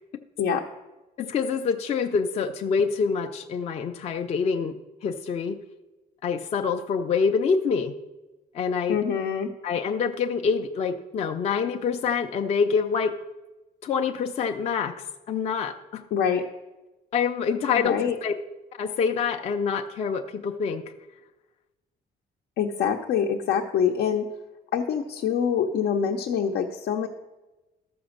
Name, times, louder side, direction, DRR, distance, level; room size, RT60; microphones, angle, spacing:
voice 1, 1.2-4.8 5.0-5.6 6.2-7.9 8.5-9.0 9.6-13.2 13.8-15.0 15.3-16.0 17.1-18.3 18.8-20.8, left 5 dB, 40° left, 5 dB, 0.5 m, -26 dB
voice 2, 8.9-9.5 16.1-16.4 17.8-18.2 22.6-24.3 24.7-27.1, left 7 dB, 80° left, 1 dB, 0.8 m, -25 dB
13.5 x 6.0 x 6.5 m, 1.1 s
cardioid pair, 180°, 17 cm